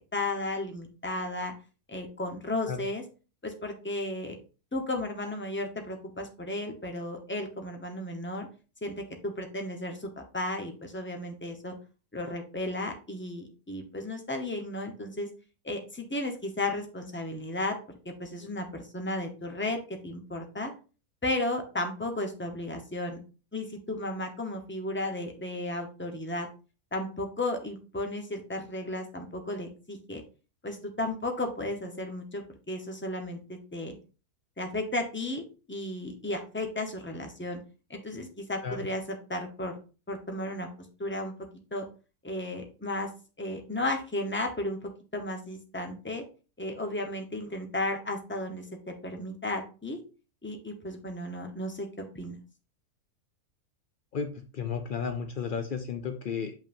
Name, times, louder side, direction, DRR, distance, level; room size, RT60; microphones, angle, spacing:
voice 1, 0.1-1.5 1.9-3.0 3.4-4.4 4.7-8.5 8.8-11.7 12.1-15.3 15.6-17.8 18.0-20.7 21.2-23.2 23.5-26.5 26.9-30.2 30.6-34.0 34.6-37.6 37.9-39.7 40.1-41.3 41.7-41.8 42.2-43.1 43.4-46.2 46.6-48.7 49.0-50.0 50.4-52.3, left 1 dB, 10° left, 3 dB, 0.8 m, -34 dB
voice 2, 54.1-56.5, left 6 dB, 80° left, 7 dB, 0.4 m, -33 dB
7.1 x 5.5 x 2.6 m, 0.34 s
omnidirectional pair, 1.6 m